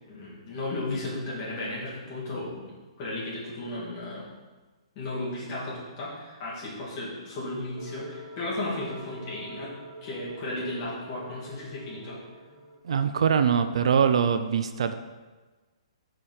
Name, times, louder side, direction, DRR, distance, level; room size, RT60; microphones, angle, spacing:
voice 1, 0.1-2.7 3.0-4.3 5.0-9.7 10.0-12.2, left 2 dB, 25° left, -7 dB, 1.9 m, -34 dB
sound 1, 7.7-12.8, right 1 dB, 35° right, 2.0 m, -46 dB
voice 2, 12.8-14.9, right 7 dB, 65° right, 9 dB, 0.4 m, -23 dB
4.9 x 4.4 x 5.5 m, 1.3 s
hypercardioid pair, 170°, 3 cm